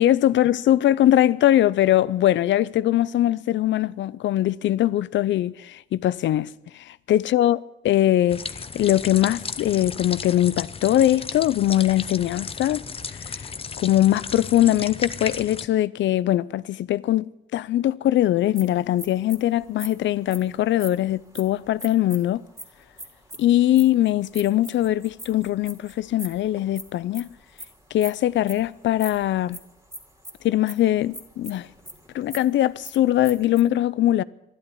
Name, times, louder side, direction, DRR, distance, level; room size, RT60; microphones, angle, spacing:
voice 1, 0.0-7.6 7.8-8.4 8.7-12.8 13.2-13.3 13.8-22.4 23.4-27.3 27.9-29.6 30.4-31.7 32.1-34.2, left 13 dB, 70° left, 0.6 m, -21 dB
sound 1, 8.3-15.7, left 5 dB, 30° left, 0.7 m, -34 dB
sound 2, 18.4-33.6, equal, 15° right, 2.9 m, -42 dB
12.0 x 11.5 x 9.9 m
cardioid pair, 90°, 20 cm